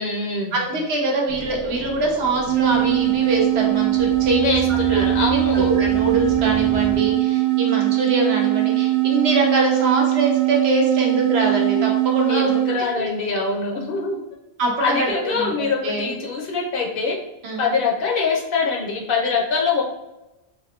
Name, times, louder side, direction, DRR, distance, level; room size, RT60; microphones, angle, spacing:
voice 1, 0.0-0.6 4.4-5.7 12.3-14.2 14.8-17.2 17.6-19.8, left 4 dB, 65° left, 0 dB, 0.7 m, -24 dB
voice 2, 0.5-12.5 13.0-13.1 14.6-16.1 17.4-17.6, right 2 dB, 75° right, -1 dB, 1.0 m, -24 dB
sound 1, 1.3-7.0, equal, 10° right, 0.5 m, -34 dB
sound 2, 2.4-12.8, right 19 dB, 50° right, 0.6 m, -20 dB
3.4 x 2.5 x 2.3 m, 0.98 s
omnidirectional pair, 1.1 m